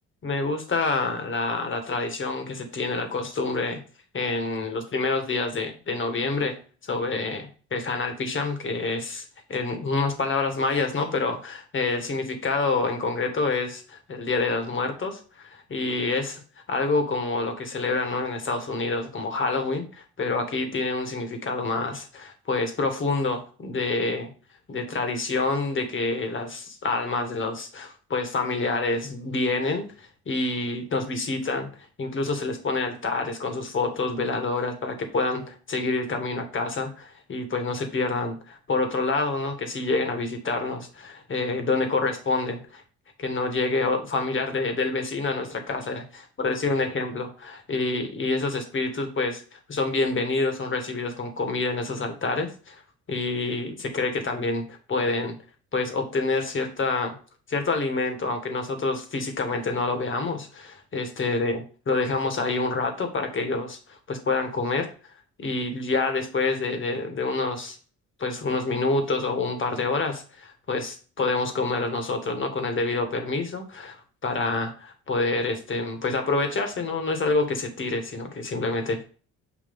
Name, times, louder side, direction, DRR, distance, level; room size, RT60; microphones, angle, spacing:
voice 1, 0.2-3.8 4.1-6.6 6.8-9.2 9.5-16.4 16.7-24.3 24.7-31.7 32.0-42.8 43.2-52.8 53.1-54.6 54.9-55.3 55.7-57.1 57.5-61.6 61.9-65.1 65.4-67.8 68.2-79.0, left 3 dB, 40° left, 5 dB, 1.6 m, -27 dB
7.5 x 2.7 x 5.3 m, 0.39 s
cardioid pair, 90°, 30 cm